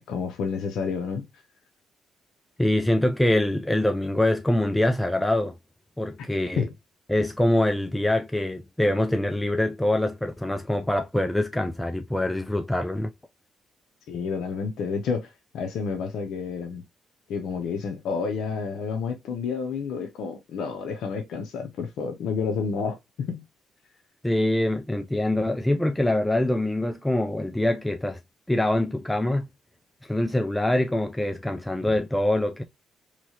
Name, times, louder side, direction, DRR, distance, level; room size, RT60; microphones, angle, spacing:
voice 1, 0.1-1.3 6.6-6.7 14.1-16.8 17.3-23.4, left 5 dB, 75° left, 0.6 m, -30 dB
voice 2, 2.6-5.5 6.0-6.7 7.1-13.1 24.2-28.2 28.5-29.5 30.0-32.6, left 1 dB, 10° left, 0.3 m, -24 dB
3.0 x 2.8 x 2.8 m
cardioid pair, 90°, 0 cm